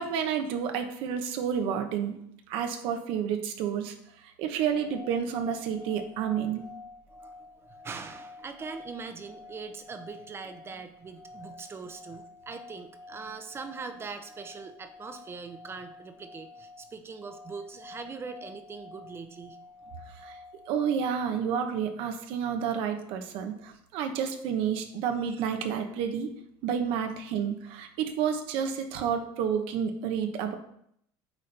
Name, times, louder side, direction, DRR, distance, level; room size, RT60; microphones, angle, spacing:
voice 1, 0.0-2.2 2.5-3.9 4.2-6.6 20.1-20.4 20.7-26.3 26.6-30.5, right 7 dB, 70° right, 6 dB, 0.8 m, -30 dB
sound 1, 4.6-21.8, left 3 dB, 5° right, 1.0 m, -50 dB
voice 2, 7.1-19.6, right 4 dB, 25° right, 8 dB, 0.7 m, -42 dB
8.2 x 4.2 x 3.3 m, 0.72 s
supercardioid pair, 120°, 10 cm